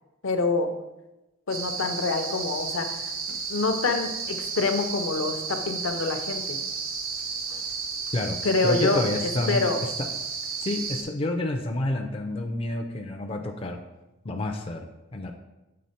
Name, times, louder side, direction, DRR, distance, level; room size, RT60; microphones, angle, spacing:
voice 1, 0.2-0.8 1.5-3.1 3.5-6.6 8.4-9.8, left 3 dB, 65° left, 6 dB, 0.6 m, -26 dB
sound 1, 1.5-11.0, right 5 dB, 80° right, 0.9 m, -32 dB
voice 2, 8.6-9.6 10.6-13.8 14.2-14.9 15.1-15.3, left 2 dB, 25° left, 3 dB, 0.4 m, -29 dB
7.5 x 3.6 x 4.3 m, 1.0 s
head